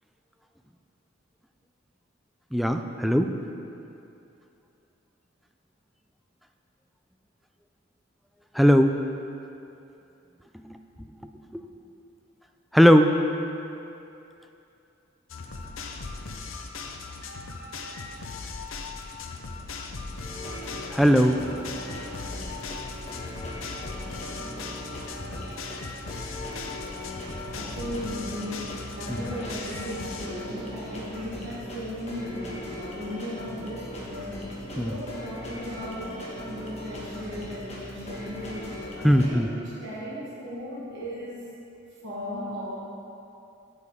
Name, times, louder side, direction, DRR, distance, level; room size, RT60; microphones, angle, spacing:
voice 1, 2.5-3.4 8.5-8.9 10.5-11.6 12.7-13.1 20.9-21.4 29.1-29.2 34.8-34.9 39.0-39.5, equal, ahead, 5 dB, 0.3 m, -20 dB
sound 1, 15.3-30.3, left 4 dB, 75° left, 0.6 m, -38 dB
sound 2, 20.1-39.3, left 1 dB, 35° left, 1.5 m, -39 dB
voice 2, 27.5-36.2 36.5-41.5 42.0-42.8, equal, 65° right, -6 dB, 1.5 m, -36 dB
8.7 x 8.3 x 3.6 m, 2.8 s
head